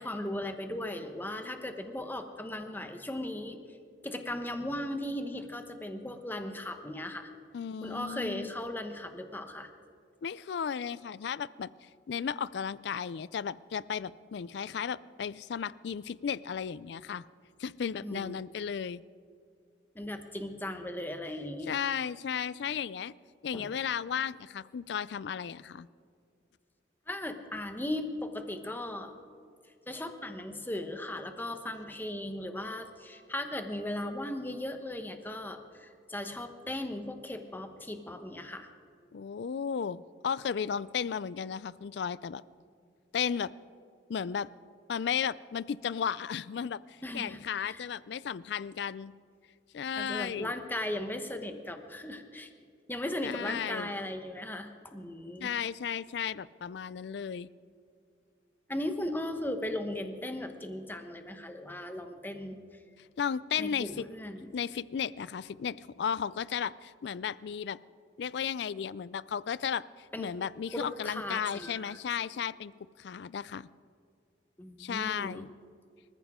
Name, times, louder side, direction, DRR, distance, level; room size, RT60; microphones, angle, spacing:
voice 1, 0.0-3.6 4.0-7.3 7.8-9.7 18.0-18.4 19.9-21.7 23.5-23.7 27.1-29.1 29.9-38.7 47.0-47.8 49.9-52.5 52.9-55.5 58.7-62.6 63.6-64.5 70.1-70.3 70.7-72.0 74.6-75.4, left 1 dB, 10° left, 6 dB, 1.0 m, -37 dB
voice 2, 7.5-8.5 10.2-17.2 17.6-19.0 21.7-23.1 23.4-25.9 39.1-42.4 43.1-43.5 44.1-44.5 44.9-49.1 49.7-50.5 53.2-53.9 55.4-57.5 63.2-64.1 64.5-67.8 68.2-72.7 73.0-73.7 74.8-75.5, left 7 dB, 65° left, 19 dB, 0.4 m, -34 dB
25.0 x 14.5 x 3.6 m, 2.3 s
head